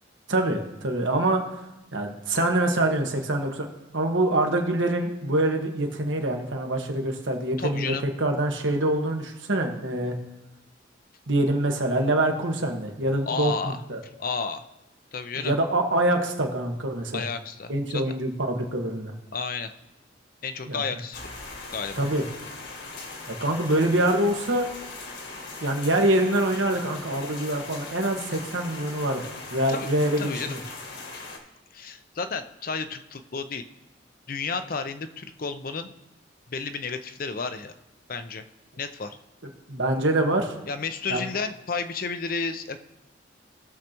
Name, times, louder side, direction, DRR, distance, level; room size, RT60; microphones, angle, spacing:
voice 1, 0.3-1.4 1.9-3.7 3.9-10.1 11.3-14.0 15.4-17.3 17.7-19.1 20.7-20.8 21.9-22.2 23.3-24.7 25.6-30.6 39.7-40.5 41.1-41.2, right 1 dB, 80° right, 3 dB, 1.4 m, -25 dB
voice 2, 7.6-8.0 13.3-13.8 14.2-14.6 15.1-15.5 17.1-18.1 19.3-19.7 20.4-21.2 21.7-22.0 29.7-29.9 30.2-30.5 31.7-33.6 34.3-35.9 36.5-37.7 38.1-38.4 38.8-39.2 40.7-42.8, left 5 dB, 45° left, 9 dB, 0.6 m, -32 dB
sound 1, 21.1-31.4, left 3 dB, 65° left, 1.8 m, -39 dB
18.5 x 6.5 x 3.0 m, 0.96 s
head